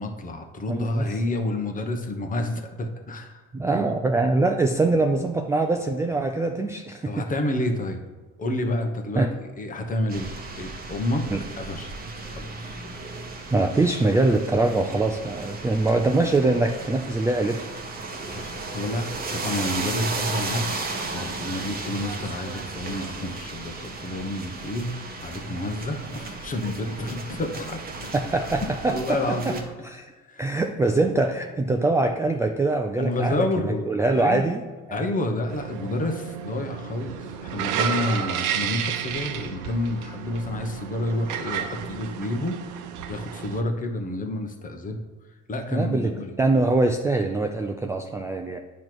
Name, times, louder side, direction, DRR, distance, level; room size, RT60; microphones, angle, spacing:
voice 1, 0.0-3.4 3.7-4.0 7.0-8.0 8.4-10.3 10.6-11.2 11.6-11.9 12.3-12.8 18.3-20.8 21.1-24.9 25.2-28.1 28.9-29.6 30.3-30.5 33.0-34.5 34.9-42.6 43.1-45.0 45.5-46.3, left 1 dB, 25° left, 5 dB, 1.0 m, -29 dB
voice 2, 0.7-1.0 3.5-7.2 9.2-9.3 11.3-11.4 13.5-17.6 28.1-29.2 29.5-29.6 29.8-30.0 30.4-34.6 34.9-35.2 45.7-46.1 46.4-48.6, right 2 dB, 10° right, 4 dB, 0.3 m, -23 dB
sound 1, 10.1-29.6, right 3 dB, 30° right, 1.1 m, -35 dB
sound 2, 35.5-43.6, right 8 dB, 80° right, 0.7 m, -31 dB
8.7 x 3.1 x 6.0 m, 1.4 s
cardioid pair, 120°, 29 cm